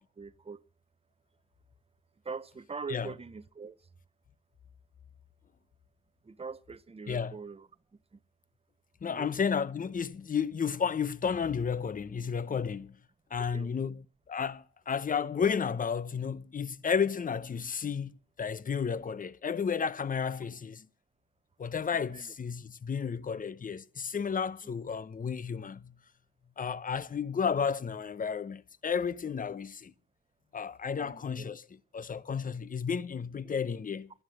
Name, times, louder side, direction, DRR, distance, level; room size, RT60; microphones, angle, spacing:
voice 1, 0.2-0.6 2.2-3.8 6.2-7.7 8.1-8.2 9.0-9.3 13.4-13.9 21.9-22.3 24.6-24.7 31.0-31.5, right 5 dB, 20° right, 0.8 m, -43 dB
voice 2, 9.0-13.0 13.3-14.0 14.3-20.9 21.6-26.0 26.6-29.9 30.5-31.6 31.9-34.1, left 6 dB, 30° left, 0.7 m, -32 dB
11.5 x 11.0 x 7.8 m
cardioid pair, 90°, 30 cm